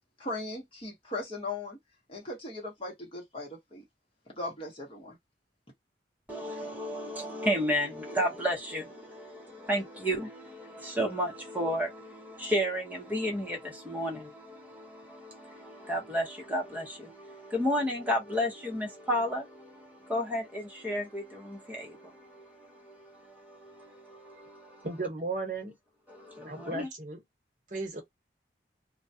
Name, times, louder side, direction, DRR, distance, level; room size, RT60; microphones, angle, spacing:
voice 1, 0.2-1.8 2.1-3.8 4.3-5.2, left 2 dB, 30° left, 1.0 m, -38 dB
voice 2, 6.3-24.9 26.1-26.9, equal, 10° right, 0.9 m, -33 dB
voice 3, 24.8-25.8 26.4-27.2 27.7-28.0, right 3 dB, 45° right, 1.0 m, -35 dB
2.3 x 2.2 x 2.7 m
head